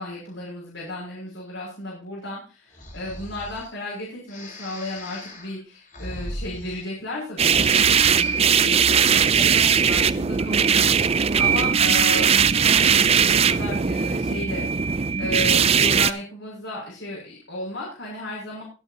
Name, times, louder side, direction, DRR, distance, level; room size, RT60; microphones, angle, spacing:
voice 1, 0.0-18.6, left 1 dB, 70° left, -6 dB, 6.5 m, -34 dB
Breathing, 2.7-3.7 4.3-7.2 7.5-8.6, left 1 dB, 40° left, 5.4 m, -38 dB
sound 1, 7.4-16.1, right 7 dB, 30° right, 0.5 m, -19 dB
22.0 x 8.2 x 2.9 m, 0.34 s
head